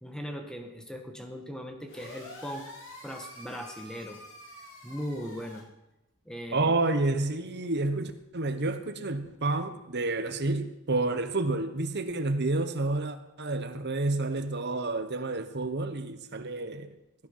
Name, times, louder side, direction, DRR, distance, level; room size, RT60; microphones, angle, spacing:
voice 1, 0.0-2.7 3.0-4.2 4.8-5.7 6.2-6.7, equal, 5° left, 4 dB, 1.6 m, -39 dB
sound 1, 1.9-5.6, left 1 dB, 60° left, 6.9 m, -47 dB
voice 2, 6.5-16.9, right 2 dB, 50° right, 9 dB, 1.2 m, -29 dB
17.5 x 10.5 x 5.7 m, 0.91 s
head